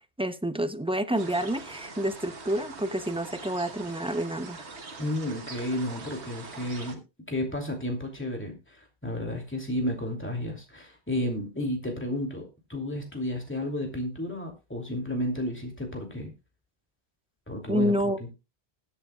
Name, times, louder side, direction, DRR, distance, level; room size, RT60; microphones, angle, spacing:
voice 1, 0.2-4.7 17.7-18.2, equal, 5° right, 0.5 m, -28 dB
sound 1, 1.2-7.0, right 4 dB, 85° right, 1.6 m, -43 dB
voice 2, 5.0-7.0 7.3-16.3 17.5-18.3, left 1 dB, 10° left, 2.7 m, -32 dB
20.0 x 8.0 x 2.3 m
omnidirectional pair, 1.1 m